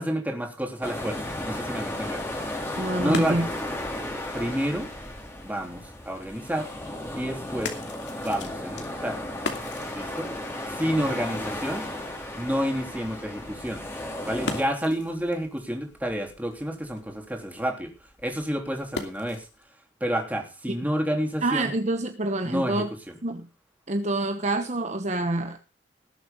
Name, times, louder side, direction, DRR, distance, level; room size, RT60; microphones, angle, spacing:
voice 1, 0.0-2.2 3.0-3.5 4.3-4.9 5.4-6.7 7.1-7.7 8.2-9.2 9.9-10.3 10.7-11.9 12.3-13.8 14.2-17.9 18.2-19.5 20.0-21.7 22.4-23.1, equal, 10° right, 2 dB, 3.4 m, -29 dB
sound 1, 0.8-14.6, left 1 dB, 15° left, 3.5 m, -34 dB
sound 2, 2.5-19.7, left 3 dB, 70° left, 2.8 m, -42 dB
voice 2, 2.8-3.5 21.4-22.9 23.2-23.5 23.9-25.6, right 2 dB, 40° right, 7 dB, 1.0 m, -27 dB
19.0 x 7.7 x 5.3 m, 0.32 s
head